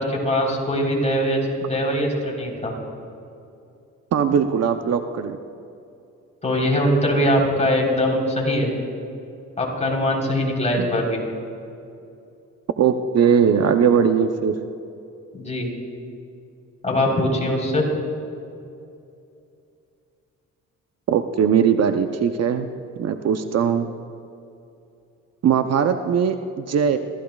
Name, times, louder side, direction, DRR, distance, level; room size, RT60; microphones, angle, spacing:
voice 1, 0.0-2.7 6.4-8.7 9.6-11.2 15.3-15.7 16.8-17.8, equal, 25° left, -2 dB, 3.9 m, -22 dB
voice 2, 4.1-5.4 10.8-10.9 12.8-14.6 21.1-22.7 23.0-23.9 25.4-27.0, right 7 dB, 55° right, 8 dB, 0.7 m, -20 dB
26.5 x 14.0 x 2.4 m, 2.6 s
cardioid pair, 90°, 30 cm